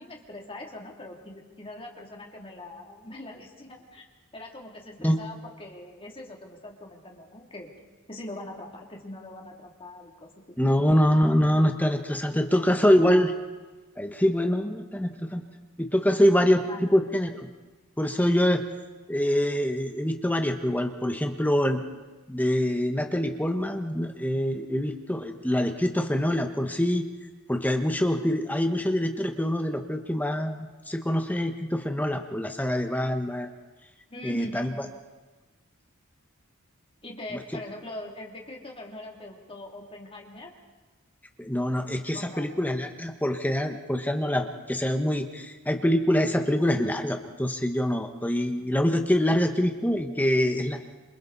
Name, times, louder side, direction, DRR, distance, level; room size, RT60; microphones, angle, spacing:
voice 1, 0.0-4.0 4.3-7.7 8.1-10.6 12.3-12.6 16.7-16.8 34.1-34.7 37.0-40.5 42.1-42.5, left 1 dB, 25° left, 0 dB, 2.9 m, -42 dB
voice 2, 10.6-13.3 14.0-15.4 15.8-17.5 18.0-18.7 19.1-21.8 22.3-27.1 27.5-30.6 30.9-33.5 34.2-34.7 41.4-50.8, equal, 10° left, 5 dB, 1.2 m, -25 dB
28.0 x 27.0 x 4.1 m, 1.2 s
head